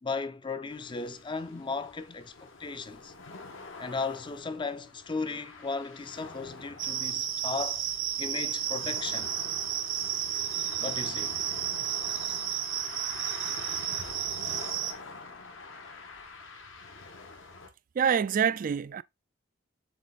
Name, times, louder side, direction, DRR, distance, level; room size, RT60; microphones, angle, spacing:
voice 1, 0.0-3.1 3.8-7.8 8.2-9.3 10.8-11.4, left 4 dB, 25° left, 0.5 m, -36 dB
sound 1, 0.7-17.7, left 3 dB, 75° left, 1.6 m, -46 dB
sound 2, 6.8-14.9, right 10 dB, 80° right, 1.1 m, -32 dB
voice 2, 18.0-19.0, right 7 dB, 45° right, 0.3 m, -26 dB
7.2 x 3.3 x 4.0 m
head